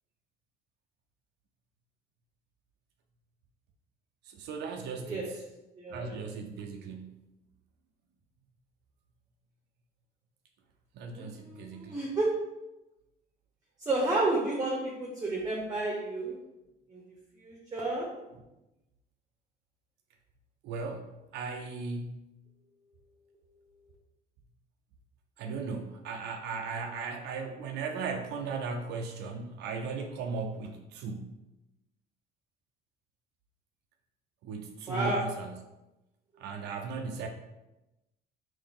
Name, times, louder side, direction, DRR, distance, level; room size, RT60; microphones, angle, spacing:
voice 1, 4.2-5.4 5.9-7.2 10.9-12.0 20.6-22.2 25.4-31.4 34.4-35.6 36.4-37.3, right 4 dB, 85° right, 4 dB, 0.4 m, -37 dB
voice 2, 5.8-6.2 11.1-12.3 13.8-16.3 16.9-17.0 17.4-18.1 34.9-35.2, right 2 dB, 20° right, -2 dB, 0.8 m, -31 dB
3.7 x 2.6 x 3.6 m, 0.97 s
cardioid pair, 110°, 17 cm